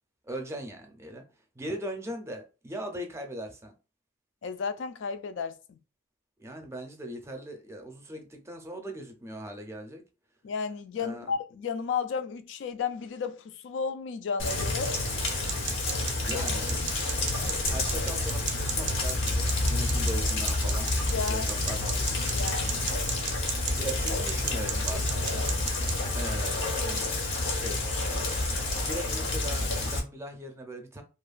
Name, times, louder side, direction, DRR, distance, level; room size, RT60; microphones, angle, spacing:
voice 1, 0.2-1.2 1.5-3.7 6.4-10.0 11.0-11.3 16.3-16.8 17.6-21.9 23.8-25.5 26.2-31.0, right 1 dB, 15° right, 0.5 m, -39 dB
voice 2, 4.4-5.8 10.4-14.9 16.2-16.5 21.1-21.5 22.2-22.9, left 5 dB, 70° left, 0.3 m, -33 dB
Rain, 14.4-30.0, left 2 dB, 90° left, 0.7 m, -29 dB
sound 1, 15.2-26.0, right 8 dB, 65° right, 0.4 m, -38 dB
2.9 x 2.2 x 2.4 m
head